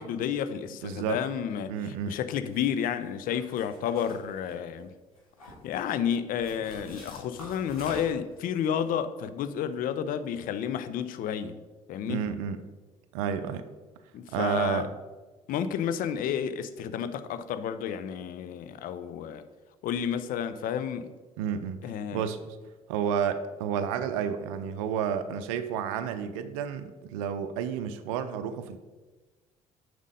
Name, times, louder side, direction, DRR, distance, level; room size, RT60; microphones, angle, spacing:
voice 1, 0.0-1.7 2.1-4.9 5.6-11.6 11.9-12.2 14.1-14.9 15.5-19.4 19.8-21.1 21.8-22.2, left 8 dB, 50° left, 0.5 m, -31 dB
voice 2, 0.8-1.2 1.7-2.2 12.1-12.6 13.1-13.7 14.3-14.9 21.4-21.9 22.1-22.6 22.9-28.8, right 8 dB, 70° right, 0.5 m, -31 dB
sound 1, 2.5-2.8 3.3-4.8 5.1-5.8 6.4-8.3, left 1 dB, 85° left, 1.9 m, -46 dB
7.3 x 5.1 x 5.2 m
figure-of-eight pair, 50°, 18 cm